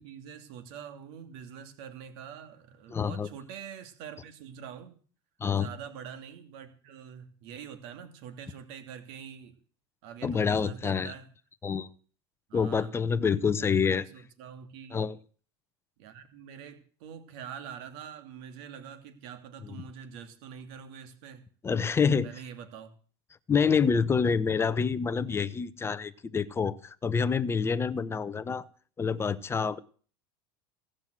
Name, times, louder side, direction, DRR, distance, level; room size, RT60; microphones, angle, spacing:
voice 1, 0.0-5.0 5.5-9.6 10.0-11.3 12.5-12.9 13.6-15.0 16.0-21.4 22.2-22.9, right 8 dB, 60° right, 8 dB, 2.6 m, -45 dB
voice 2, 2.9-3.3 5.4-5.7 10.2-11.1 11.6-11.9 12.5-14.1 14.9-15.2 21.6-22.3 23.5-28.6 29.0-29.8, left 6 dB, 20° left, 16 dB, 0.8 m, -27 dB
16.5 x 7.6 x 8.0 m, 0.42 s
supercardioid pair, 125°, 14 cm